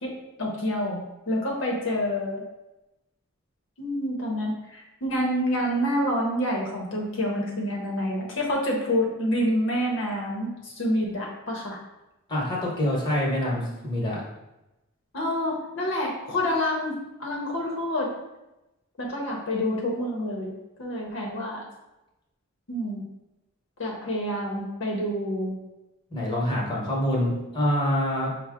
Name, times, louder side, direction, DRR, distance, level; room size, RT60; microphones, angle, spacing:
voice 1, 0.0-2.4 3.8-11.8 15.1-18.1 19.0-21.7 22.7-23.0 23.8-25.6, equal, 60° left, -2 dB, 0.7 m, -28 dB
voice 2, 12.3-14.2 26.1-28.3, equal, 20° left, -4 dB, 1.0 m, -26 dB
5.4 x 2.0 x 3.5 m, 0.96 s
head